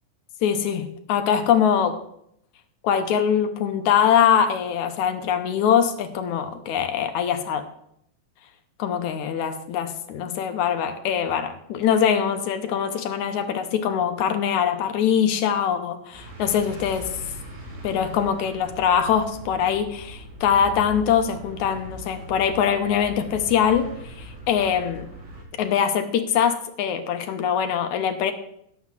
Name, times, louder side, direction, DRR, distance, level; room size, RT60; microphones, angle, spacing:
voice 1, 0.4-2.0 2.8-7.6 8.8-17.1 17.8-25.1 25.6-28.3, left 8 dB, 70° left, 7 dB, 2.0 m, -23 dB
sound 1, 16.1-25.4, right 1 dB, 60° right, 4.0 m, -40 dB
12.5 x 5.7 x 7.3 m, 0.73 s
omnidirectional pair, 4.1 m